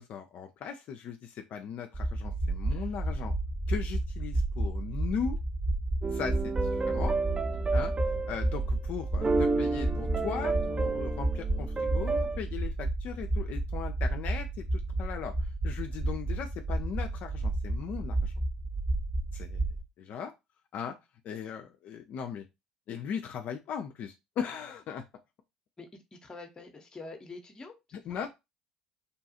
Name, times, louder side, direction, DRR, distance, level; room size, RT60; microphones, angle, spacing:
voice 1, 0.0-3.3 3.7-5.4 6.1-7.2 7.7-7.9 8.3-18.3 19.3-19.6 20.0-20.3 20.7-21.0 21.2-22.4 22.9-25.0 27.9-28.3, left 7 dB, 50° left, 5 dB, 0.4 m, -38 dB
sound 1, 1.9-19.8, right 2 dB, 40° right, 0.9 m, -31 dB
sound 2, 6.0-8.7 9.1-12.4, right 3 dB, 25° right, 0.3 m, -31 dB
voice 2, 25.8-27.7, left 3 dB, 20° left, 4 dB, 0.7 m, -46 dB
2.7 x 2.3 x 2.7 m, 0.23 s
hypercardioid pair, 60°, 3 cm